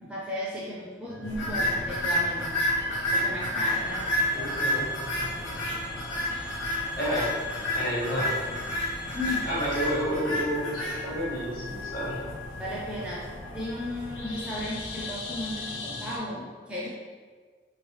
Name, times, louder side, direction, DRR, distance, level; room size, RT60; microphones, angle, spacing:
voice 1, 0.0-2.5 2.8-4.1 9.1-9.5 12.6-13.3 13.5-16.9, left 1 dB, 5° right, -6 dB, 0.4 m, -35 dB
sound 1, 1.1-16.2, left 3 dB, 70° left, 0.5 m, -40 dB
sound 2, 1.3-15.6, left 1 dB, 85° left, 1.0 m, -31 dB
sound 3, 3.6-10.0, left 1 dB, 25° left, 0.7 m, -44 dB
voice 2, 4.3-4.9 6.6-7.3 7.7-8.4 9.4-12.2, equal, 45° left, -6 dB, 1.1 m, -30 dB
3.1 x 2.8 x 3.2 m, 1.6 s
head